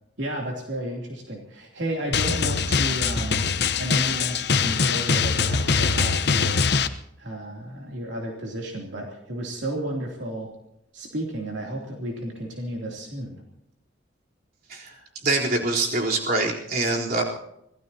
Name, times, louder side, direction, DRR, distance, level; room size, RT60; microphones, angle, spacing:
voice 1, 0.2-6.6 7.2-10.5 10.9-13.4, right 1 dB, 70° right, 0 dB, 3.1 m, -32 dB
Drum, 2.1-6.9, left 5 dB, 60° left, 1.0 m, -23 dB
voice 2, 15.2-17.2, right 2 dB, 55° right, -2 dB, 3.9 m, -24 dB
26.0 x 18.0 x 2.9 m, 0.79 s
head